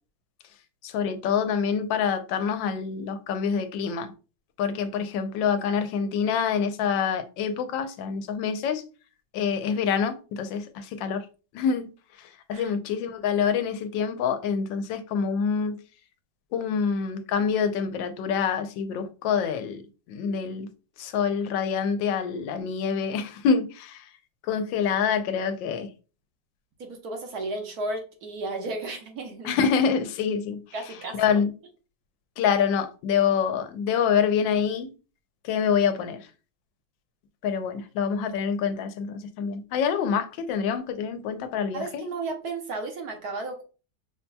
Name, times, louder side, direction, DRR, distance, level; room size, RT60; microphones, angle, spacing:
voice 1, 0.8-4.1 4.6-8.8 9.3-11.3 11.5-11.9 12.2-15.8 16.5-19.8 20.1-20.7 21.0-24.1 24.4-25.9 29.4-30.6 31.2-31.5 32.4-34.9 35.4-36.3 37.4-42.0, left 6 dB, 90° left, 1.3 m, -26 dB
voice 2, 26.8-29.6 30.7-31.4 41.7-43.6, right 2 dB, 65° right, 1.2 m, -34 dB
5.6 x 2.7 x 2.2 m
omnidirectional pair, 2.0 m